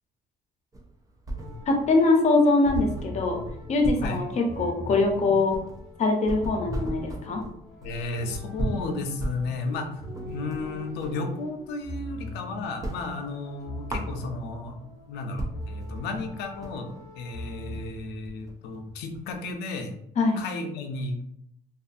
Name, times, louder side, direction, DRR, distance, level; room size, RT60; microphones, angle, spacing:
sound 1, 0.7-1.9 2.2-2.3 2.6-11.2 11.6-12.4 12.7-14.7 15.1-15.2 15.4-19.5, right 2 dB, 20° right, 0.4 m, -36 dB
sound 2, 1.4-17.9, left 1 dB, ahead, 1.2 m, -41 dB
voice 1, 1.7-3.4 3.7-5.6 6.0-7.4 20.2-20.4, left 3 dB, 45° left, 1 dB, 0.7 m, -22 dB
voice 2, 7.8-14.8 15.1-19.9 20.4-21.2, left 3 dB, 85° left, 5 dB, 0.5 m, -33 dB
2.5 x 2.4 x 2.5 m, 0.76 s
cardioid pair, 110°, 17 cm